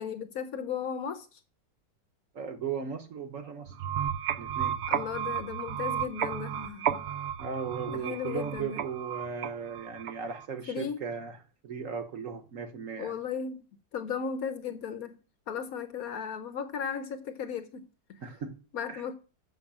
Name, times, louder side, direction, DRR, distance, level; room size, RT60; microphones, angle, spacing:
voice 1, 0.0-1.4 4.9-7.0 7.9-8.8 10.7-11.0 13.0-13.7 13.9-15.2 15.5-18.2 18.7-19.1, left 7 dB, 65° left, 1.0 m, -36 dB
voice 2, 2.3-3.7 4.4-4.8 7.4-11.4 11.6-13.1 18.2-18.6 18.9-19.0, right 6 dB, 55° right, 1.0 m, -37 dB
sound 1, 3.7-10.5, right 9 dB, 85° right, 0.5 m, -33 dB
6.3 x 6.2 x 7.3 m
omnidirectional pair, 1.9 m